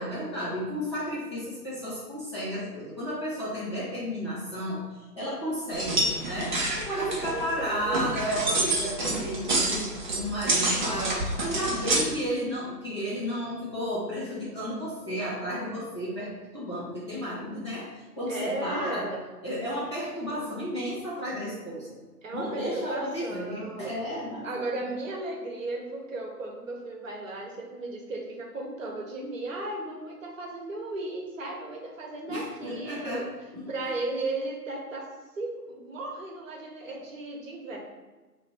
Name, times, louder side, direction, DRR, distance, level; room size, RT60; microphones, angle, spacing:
voice 1, 0.0-4.8 5.2-16.3 16.5-17.9 18.1-19.1 19.4-22.0 22.3-24.7 32.3-33.2 33.5-33.9, equal, 20° left, -11 dB, 0.6 m, -33 dB
sound 1, 5.7-12.0, right 2 dB, 30° right, 0.6 m, -28 dB
voice 2, 6.9-8.1 18.3-19.2 22.2-23.9 24.4-33.3 33.7-35.1 35.4-37.8, right 2 dB, 50° right, 0 dB, 1.0 m, -35 dB
3.0 x 2.5 x 4.2 m, 1.2 s
figure-of-eight pair, 135°, 49 cm